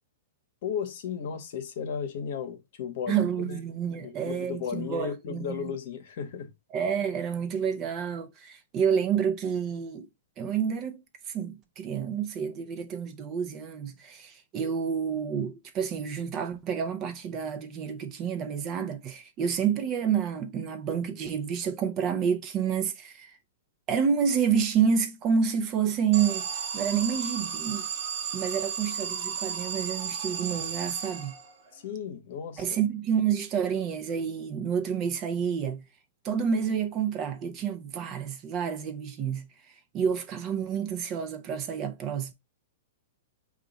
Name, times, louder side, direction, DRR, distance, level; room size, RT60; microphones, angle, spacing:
voice 1, 0.6-3.6 3.9-6.5 31.7-32.6, left 7 dB, 55° left, 0.9 m, -35 dB
voice 2, 3.1-5.7 6.7-10.1 10.4-23.3 23.9-26.5 26.7-27.9 28.3-31.4 32.6-35.8 36.2-39.5 39.9-42.3, right 7 dB, 30° right, 0.6 m, -29 dB
Alarm, 26.1-31.7, right 7 dB, 50° right, 0.9 m, -34 dB
4.6 x 2.4 x 3.9 m
hypercardioid pair, 150°, 0 cm